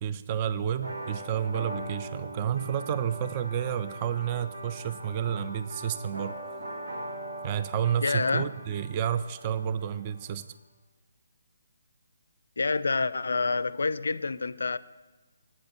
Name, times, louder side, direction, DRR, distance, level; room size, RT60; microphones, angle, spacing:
voice 1, 0.0-6.4 7.4-10.5, right 9 dB, 30° right, 0.4 m, -30 dB
sound 1, 0.8-10.4, right 1 dB, 70° right, 1.4 m, -41 dB
voice 2, 8.0-8.5 12.6-14.8, left 4 dB, 70° left, 0.4 m, -27 dB
8.5 x 7.7 x 6.7 m
figure-of-eight pair, 145°, 0 cm